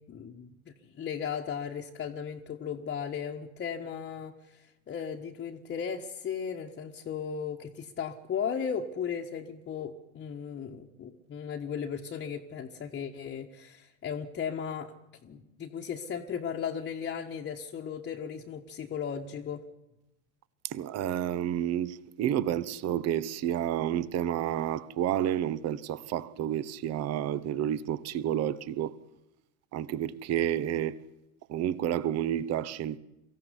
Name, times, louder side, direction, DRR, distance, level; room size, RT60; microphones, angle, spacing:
voice 1, 0.1-14.9 15.2-19.6, left 7 dB, 25° left, 1.5 m, -36 dB
voice 2, 20.6-28.9 29.7-31.0 31.5-33.0, right 11 dB, 35° right, 1.1 m, -30 dB
23.5 x 15.5 x 9.9 m
figure-of-eight pair, 80°, 44 cm